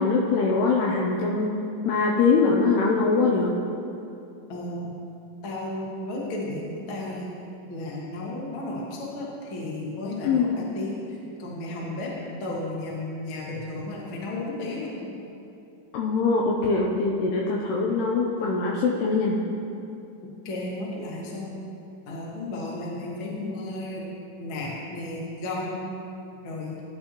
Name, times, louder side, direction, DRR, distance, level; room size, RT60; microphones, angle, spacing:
voice 1, 0.0-1.5 1.9-3.5 10.2-10.5 15.9-19.4, left 4 dB, 80° left, -2 dB, 2.4 m, -22 dB
voice 2, 4.5-4.9 5.4-7.3 7.7-12.1 12.4-15.1 20.4-21.5 22.1-24.0 24.4-25.9 26.4-26.8, left 2 dB, 65° left, -4 dB, 1.2 m, -33 dB
15.5 x 9.8 x 3.1 m, 2.8 s
omnidirectional pair, 5.5 m